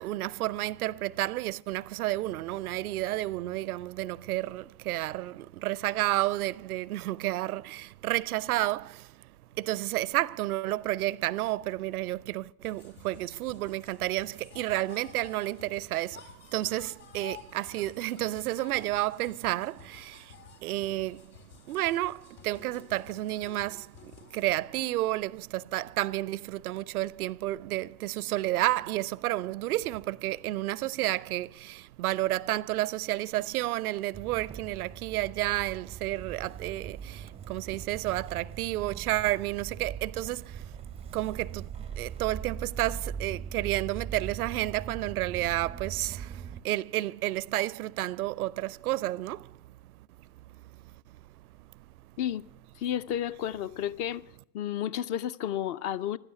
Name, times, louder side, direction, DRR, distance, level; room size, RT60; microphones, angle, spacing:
voice 1, 0.0-51.2 51.6-51.7 52.0-52.1, right 16 dB, 65° right, 0.5 m, -31 dB
sound 1, 12.6-24.5, left 8 dB, 75° left, 3.4 m, -52 dB
Motor vehicle (road) / Engine starting, 34.1-46.6, right 8 dB, 15° right, 0.5 m, -41 dB
voice 2, 52.8-54.2 54.5-56.2, left 10 dB, 35° left, 0.5 m, -31 dB
16.0 x 12.0 x 6.7 m
figure-of-eight pair, 80°, 48 cm